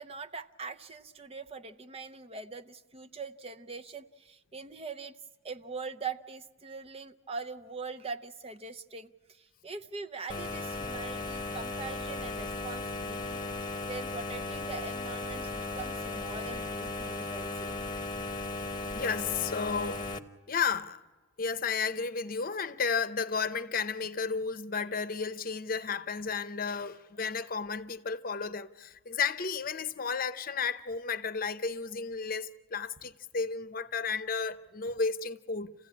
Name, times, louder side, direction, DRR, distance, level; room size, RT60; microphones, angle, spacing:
voice 1, 0.0-5.2 5.4-13.4 13.9-17.8, right 4 dB, 30° right, 0.6 m, -42 dB
sound 1, 10.3-20.2, left 2 dB, 20° left, 1.1 m, -36 dB
voice 2, 18.9-20.1 20.5-21.0 21.4-35.7, left 5 dB, 45° left, 0.8 m, -33 dB
29.0 x 15.5 x 8.6 m
head